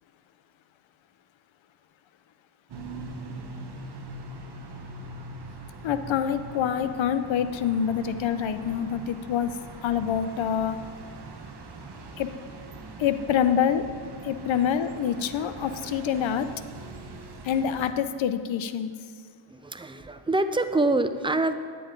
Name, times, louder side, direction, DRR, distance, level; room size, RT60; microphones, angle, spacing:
sound 1, 2.7-17.9, right 2 dB, 50° right, 1.1 m, -42 dB
voice 1, 5.8-10.8 12.2-12.3 13.0-13.8 14.2-16.5 17.4-18.9, left 8 dB, 65° left, 10 dB, 0.7 m, -26 dB
voice 2, 19.5-21.6, right 2 dB, 10° right, 9 dB, 0.4 m, -25 dB
9.7 x 9.4 x 3.8 m, 2.1 s
cardioid pair, 85°, 50 cm